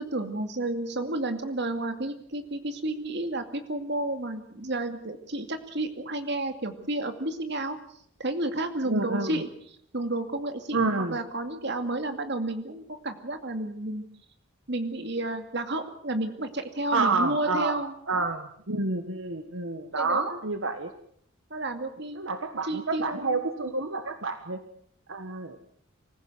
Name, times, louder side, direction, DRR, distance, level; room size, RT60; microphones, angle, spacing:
voice 1, 0.0-7.8 8.2-9.5 9.9-14.0 14.7-18.3 19.9-20.4 21.5-22.2 22.6-23.4, right 2 dB, 60° right, 7 dB, 2.4 m, -31 dB
voice 2, 8.9-9.3 10.7-11.2 16.9-17.8 18.1-20.9 22.1-24.6 25.1-25.6, right 3 dB, 80° right, 8 dB, 1.6 m, -29 dB
25.0 x 15.5 x 7.9 m, 0.67 s
head